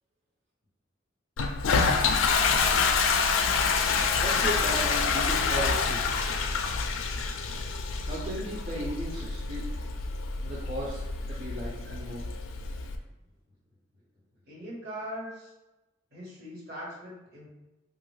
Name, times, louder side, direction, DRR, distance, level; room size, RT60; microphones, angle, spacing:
Toilet flush, 1.4-13.0, left 5 dB, 85° left, 0.4 m, -27 dB
voice 1, 4.2-6.0 8.1-9.7 10.4-11.0 11.3-12.3, right 1 dB, 35° right, -6 dB, 0.5 m, -35 dB
voice 2, 14.4-15.5 16.1-17.5, equal, 55° right, -5 dB, 1.1 m, -41 dB
3.0 x 2.5 x 3.1 m, 0.99 s
head